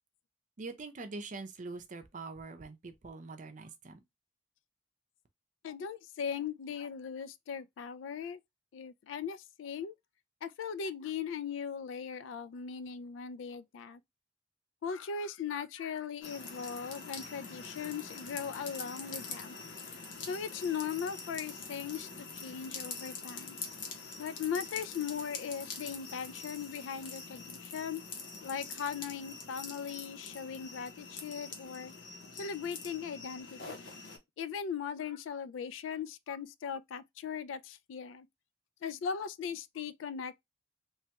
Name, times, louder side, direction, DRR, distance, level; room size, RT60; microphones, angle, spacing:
voice 1, 0.6-4.0, right 3 dB, 40° right, 0.5 m, -44 dB
voice 2, 5.6-8.4 8.7-9.9 10.4-14.0 14.8-19.6 20.2-23.6 24.2-28.0 28.4-31.9 32.3-33.9 34.4-38.3 38.8-40.3, left 7 dB, 85° left, 0.3 m, -39 dB
sound 1, 16.2-34.2, left 4 dB, 70° left, 0.8 m, -45 dB
3.2 x 2.2 x 2.8 m
head